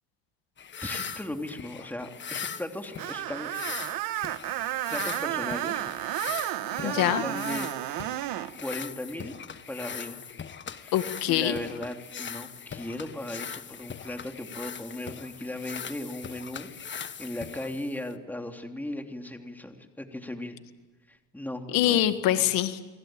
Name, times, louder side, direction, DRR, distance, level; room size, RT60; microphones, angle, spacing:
sound 1, 0.6-18.2, left 7 dB, 35° left, 1.6 m, -40 dB
voice 1, 0.8-3.5 4.9-5.9 6.4-7.7 8.6-9.4 9.7-10.2 10.8-11.0 11.3-20.6 21.1-22.0 22.3-22.4, left 1 dB, 5° left, 4 dB, 3.2 m, -37 dB
Screech, 3.0-8.5, right 15 dB, 75° right, 1.5 m, -32 dB
voice 2, 6.8-7.2 10.9-11.6 21.7-22.8, left 13 dB, 75° left, 9 dB, 1.9 m, -24 dB
29.5 x 22.0 x 9.1 m, 1.2 s
cardioid pair, 105°, 34 cm